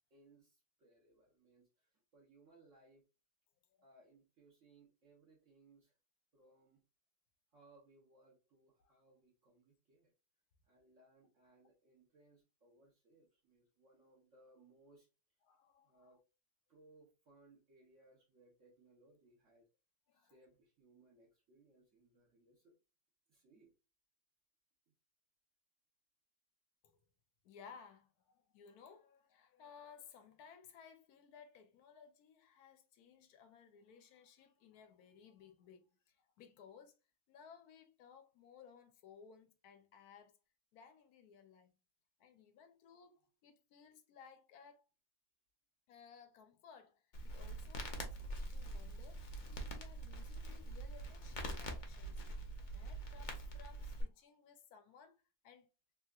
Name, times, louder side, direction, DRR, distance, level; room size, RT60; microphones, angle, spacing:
voice 1, 0.1-3.1 3.8-5.9 6.3-6.8 7.5-10.1 10.7-15.1 15.8-16.2 16.7-19.7 20.1-22.7 23.3-23.7, right 2 dB, 60° right, 1.2 m, -67 dB
voice 2, 15.4-16.2 20.1-20.3 26.8-27.0 27.4-36.9 37.3-40.3 40.7-41.7 42.2-44.8 45.9-52.3 52.7-55.7, left 6 dB, 80° left, 1.1 m, -60 dB
Crackle, 47.1-54.0, right 1 dB, 50° left, 0.6 m, -44 dB
3.4 x 2.8 x 2.3 m
omnidirectional pair, 1.6 m